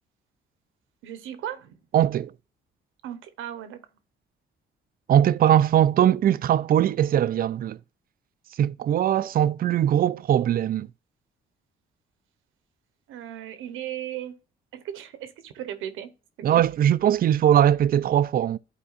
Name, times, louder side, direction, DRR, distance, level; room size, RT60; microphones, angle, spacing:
voice 1, 1.0-1.8 3.0-3.8 5.4-5.5 13.1-14.4 14.7-16.1 16.4-16.6, right 11 dB, 90° right, 0.9 m, -36 dB
voice 2, 1.9-2.3 5.1-7.8 8.6-10.9 16.4-18.6, right 10 dB, 50° right, 0.4 m, -20 dB
11.5 x 4.4 x 2.4 m
cardioid pair, 90°, 20 cm